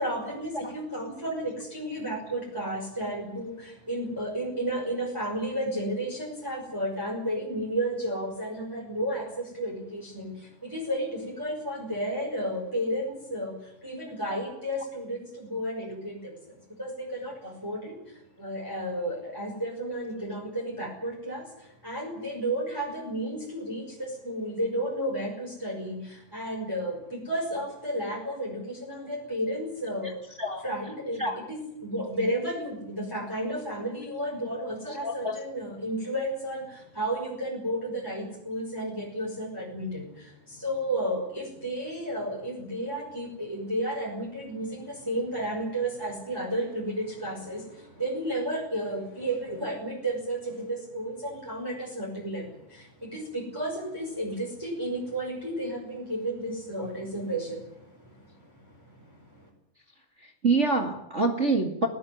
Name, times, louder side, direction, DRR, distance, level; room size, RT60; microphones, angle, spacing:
voice 1, 0.0-30.3 30.6-59.5, right 1 dB, 5° right, -3 dB, 5.6 m, -32 dB
voice 2, 34.9-35.4 60.4-61.9, right 3 dB, 25° right, 4 dB, 1.9 m, -26 dB
20.0 x 18.5 x 9.7 m, 0.80 s
omnidirectional pair, 3.9 m